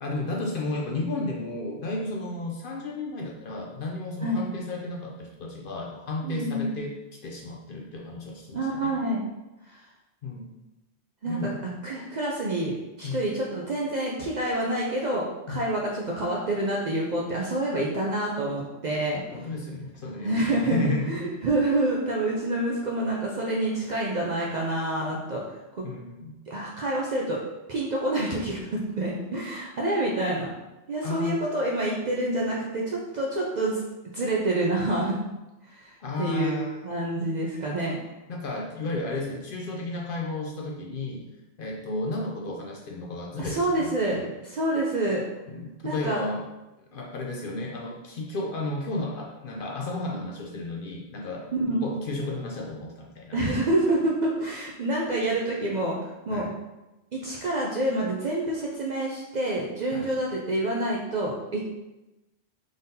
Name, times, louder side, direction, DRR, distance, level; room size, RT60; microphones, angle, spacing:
voice 1, 0.0-7.0 7.2-8.9 10.2-10.5 11.2-11.6 13.0-13.2 15.5-15.7 19.3-21.4 25.8-26.3 31.0-31.4 36.0-36.8 38.3-41.3 41.6-44.3 45.5-46.5 46.8-51.5 51.8-53.4 56.3-56.5 59.9-60.1, left 2 dB, 60° left, -1 dB, 0.6 m, -33 dB
voice 2, 6.2-6.8 8.5-9.2 9.7-9.8 11.2-11.6 11.8-19.2 20.2-20.8 21.1-25.4 25.7-25.8 26.5-27.4 27.7-30.5 30.9-33.8 34.1-35.2 35.7-38.0 43.4-45.2 45.8-46.2 51.5-51.8 53.3-56.5 57.1-61.6, right 1 dB, 55° right, -3 dB, 0.5 m, -27 dB
3.8 x 3.6 x 2.7 m, 1.0 s
omnidirectional pair, 1.2 m